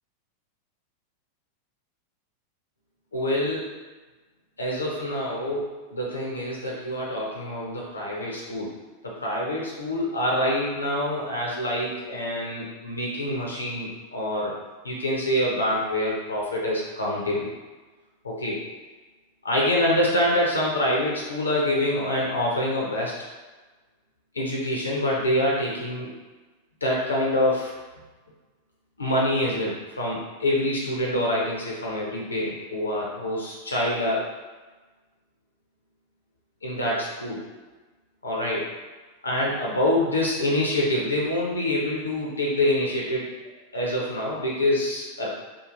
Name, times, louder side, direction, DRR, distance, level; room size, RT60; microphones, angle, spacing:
voice 1, 3.1-3.7 4.6-8.7 9.0-14.6 14.8-17.5 18.2-18.6 19.4-23.1 24.3-26.2 26.8-27.7 29.0-34.3 36.6-37.4 38.2-38.7 39.2-43.3 43.7-45.3, left 1 dB, 75° left, -3 dB, 0.6 m, -26 dB
3.0 x 2.4 x 2.4 m, 1.3 s
figure-of-eight pair, 90°, 0 cm